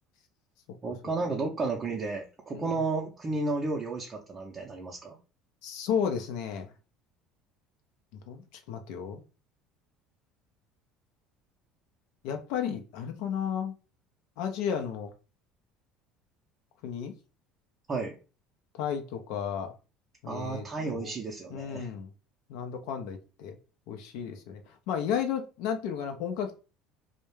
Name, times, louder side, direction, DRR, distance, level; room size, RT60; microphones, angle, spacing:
voice 1, 0.8-5.2 17.9-18.2 20.3-21.9, right 3 dB, 30° right, 0.5 m, -32 dB
voice 2, 5.6-6.7 8.3-9.2 12.2-13.7 14.4-15.1 16.8-17.1 18.7-19.7 20.2-20.6 20.9-21.1 21.5-22.1 22.5-23.6 23.9-26.6, left 8 dB, 75° left, 0.4 m, -33 dB
2.2 x 2.1 x 3.0 m
supercardioid pair, 100°, 0 cm